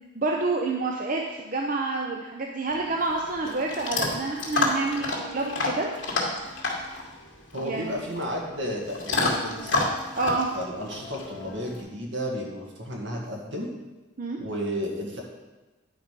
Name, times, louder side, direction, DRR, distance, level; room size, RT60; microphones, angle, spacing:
voice 1, 0.1-5.9 7.5-8.0 10.2-10.5 14.2-14.4, right 3 dB, 40° right, 0 dB, 0.6 m, -28 dB
Chewing mastication / Dog, 2.7-11.8, left 2 dB, 65° left, 2.3 m, -30 dB
voice 2, 7.5-9.8 10.5-13.7 14.4-15.2, equal, 70° right, -1 dB, 1.9 m, -32 dB
10.5 x 5.1 x 5.2 m, 1.1 s
head